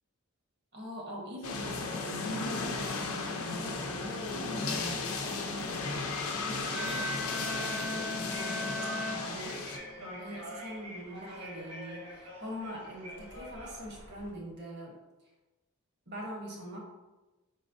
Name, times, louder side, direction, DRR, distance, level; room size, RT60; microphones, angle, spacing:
voice 1, 0.7-2.6 3.0-5.8 6.2-8.2 9.1-9.6 10.0-15.0 16.1-16.8, equal, 50° right, -1 dB, 1.1 m, -43 dB
sound 1, 1.4-9.8, left 3 dB, 70° left, 0.6 m, -35 dB
sound 2, 4.9-14.3, equal, 90° right, 1.3 m, -47 dB
Bowed string instrument, 6.7-10.0, equal, 5° right, 0.4 m, -38 dB
4.8 x 4.1 x 2.7 m, 1.1 s
head